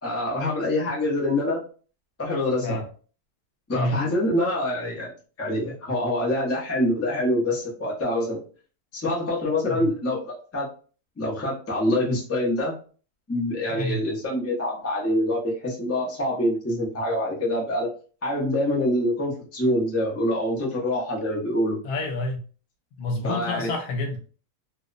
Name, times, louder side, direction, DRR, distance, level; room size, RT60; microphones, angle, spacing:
voice 1, 0.0-1.6 2.2-2.8 3.7-5.1 5.4-8.4 8.9-10.7 11.2-12.7 13.3-17.9 18.2-21.8 23.2-23.7, left 1 dB, 20° left, -4 dB, 0.3 m, -25 dB
voice 2, 3.7-4.0 9.7-10.0 13.7-14.0 21.8-22.4 23.0-24.2, left 2 dB, 80° left, 2 dB, 1.1 m, -28 dB
2.7 x 2.1 x 2.4 m, 0.39 s
omnidirectional pair, 1.6 m